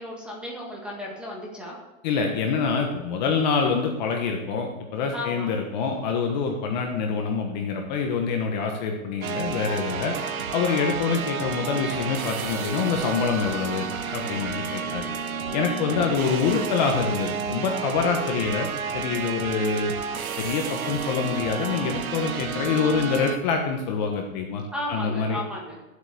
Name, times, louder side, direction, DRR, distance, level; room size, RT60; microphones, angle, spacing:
voice 1, 0.0-1.8 5.1-5.5 24.7-25.8, left 1 dB, ahead, -2 dB, 1.9 m, -34 dB
voice 2, 2.0-10.2 10.5-15.1 15.5-20.0 20.4-24.6 24.9-25.4, left 5 dB, 30° left, 2 dB, 1.2 m, -26 dB
sound 1, 9.2-23.4, right 6 dB, 90° right, 1.5 m, -31 dB
13.0 x 8.1 x 6.8 m, 1.1 s
hypercardioid pair, 165°, 41 cm